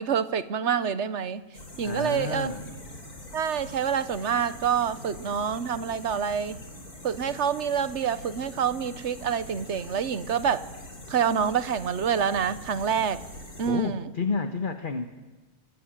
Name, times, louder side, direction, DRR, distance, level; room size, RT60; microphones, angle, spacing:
voice 1, 0.0-1.4 1.8-2.5 3.3-6.6 7.0-10.7 11.1-13.2 13.6-14.1, right 7 dB, 50° right, 14 dB, 1.3 m, -27 dB
sound 1, 1.5-13.7, left 1 dB, 90° left, 5.5 m, -43 dB
voice 2, 1.8-2.8 13.6-15.2, left 4 dB, 35° left, 8 dB, 1.5 m, -30 dB
26.0 x 23.0 x 9.1 m, 1.2 s
omnidirectional pair, 1.6 m